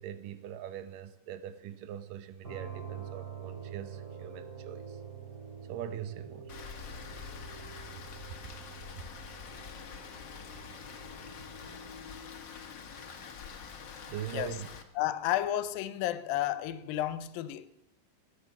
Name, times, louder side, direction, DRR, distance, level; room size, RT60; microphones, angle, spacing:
voice 1, 0.0-4.9 5.7-6.5 8.4-8.5 14.1-14.7, right 10 dB, 75° right, 2.5 m, -42 dB
sound 1, 2.4-12.0, right 7 dB, 30° right, 3.2 m, -46 dB
Rain, 6.5-14.8, left 6 dB, 65° left, 1.1 m, -46 dB
voice 2, 15.0-17.7, left 13 dB, 80° left, 2.5 m, -32 dB
18.5 x 8.6 x 7.1 m
omnidirectional pair, 4.1 m